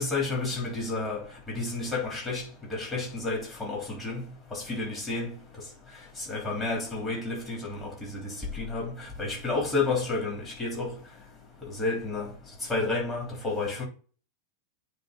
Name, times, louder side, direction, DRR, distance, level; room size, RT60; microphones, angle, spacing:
voice 1, 0.0-2.4 2.7-4.2 4.5-5.4 6.3-8.9 9.2-10.9 11.8-12.3 12.7-13.8, left 3 dB, 15° left, 3.6 m, -30 dB
9.2 x 3.2 x 4.0 m
figure-of-eight pair, 90°, 0 cm